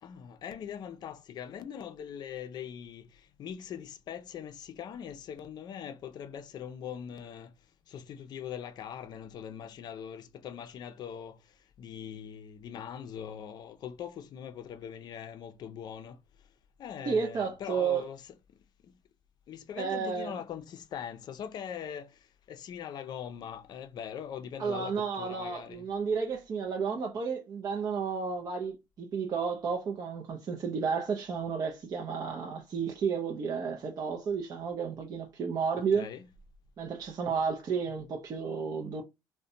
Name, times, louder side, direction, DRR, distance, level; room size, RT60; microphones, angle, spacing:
voice 1, 0.0-7.5 7.9-16.5 16.8-18.2 19.5-25.8 35.8-36.2, left 8 dB, 50° left, 0.4 m, -42 dB
voice 2, 17.1-18.1 19.8-20.4 24.6-36.1 36.8-39.0, right 6 dB, 45° right, 0.5 m, -32 dB
2.5 x 2.1 x 2.6 m
supercardioid pair, 90°, 9 cm